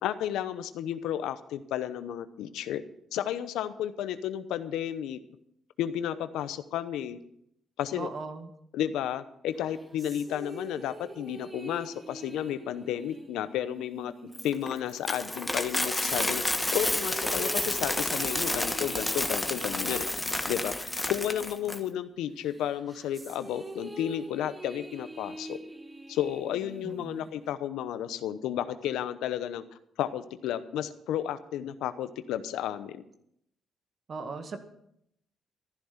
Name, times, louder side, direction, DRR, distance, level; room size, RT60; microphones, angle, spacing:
voice 1, 0.0-2.8 3.1-5.2 5.8-7.2 7.8-8.1 8.7-16.4 16.7-20.1 20.5-20.7 21.1-25.6 26.1-29.6 30.0-33.0, left 10 dB, 90° left, 12 dB, 0.9 m, -32 dB
voice 2, 8.0-8.5 26.8-27.3 34.1-34.6, right 4 dB, 45° right, 7 dB, 1.8 m, -38 dB
sound 1, 9.5-15.5 16.0-22.0 22.4-27.5, right 1 dB, 15° right, 1.5 m, -45 dB
Coin (dropping), 14.3-21.8, left 1 dB, 10° left, 1.3 m, -30 dB
13.5 x 11.5 x 5.9 m, 0.74 s
cardioid pair, 90°, 0 cm